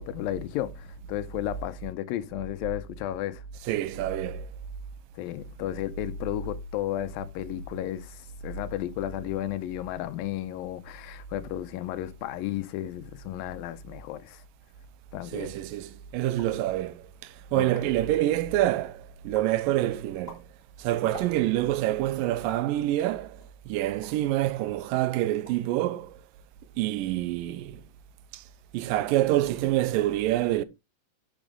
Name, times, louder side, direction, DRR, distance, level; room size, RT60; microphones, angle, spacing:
voice 1, 0.0-3.4 5.2-14.4 15.1-15.5 17.5-17.7, left 13 dB, 85° left, 2.5 m, -33 dB
voice 2, 3.7-4.5 15.3-20.4 20.8-26.2 26.8-27.8 28.3-28.4 28.7-30.6, right 14 dB, 80° right, 2.3 m, -27 dB
sound 1, 16.3-16.6 17.2-17.3 17.4-18.0 18.4-18.9 19.3-19.6 20.0-21.7 22.5-22.8 23.4-24.3 24.7-24.9 25.2-25.7 26.0-26.5, left 1 dB, 15° left, 4.3 m, -48 dB
10.5 x 6.3 x 3.7 m
omnidirectional pair, 4.0 m